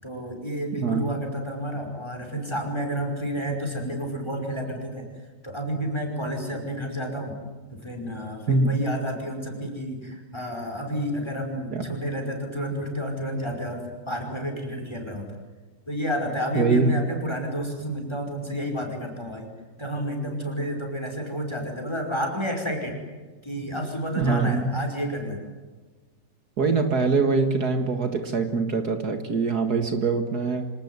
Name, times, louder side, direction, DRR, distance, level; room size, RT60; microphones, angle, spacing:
voice 1, 0.0-5.1 5.4-7.3 7.7-15.2 15.9-19.5 19.8-22.9 23.4-25.4, equal, 15° left, 2 dB, 5.5 m, -30 dB
voice 2, 0.7-1.1 8.5-8.7 11.7-12.0 16.5-17.0 24.1-24.8 26.6-30.7, right 4 dB, 60° right, 7 dB, 2.3 m, -23 dB
26.5 x 19.0 x 9.6 m, 1.4 s
omnidirectional pair, 1.9 m